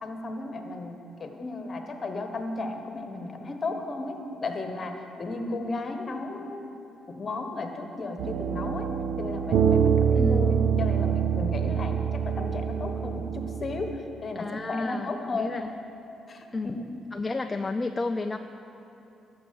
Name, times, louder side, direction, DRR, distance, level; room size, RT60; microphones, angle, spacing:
voice 1, 0.0-6.7 7.1-8.9 9.2-15.5 16.3-16.7, left 3 dB, 40° left, 5 dB, 1.2 m, -34 dB
sound 1, 8.2-14.0, right 7 dB, 70° right, 0.6 m, -25 dB
voice 2, 10.2-10.5 14.4-15.7 16.5-16.8 17.1-18.4, left 3 dB, 25° left, 7 dB, 0.4 m, -31 dB
11.5 x 6.4 x 7.6 m, 2.9 s
cardioid pair, 90°, 0 cm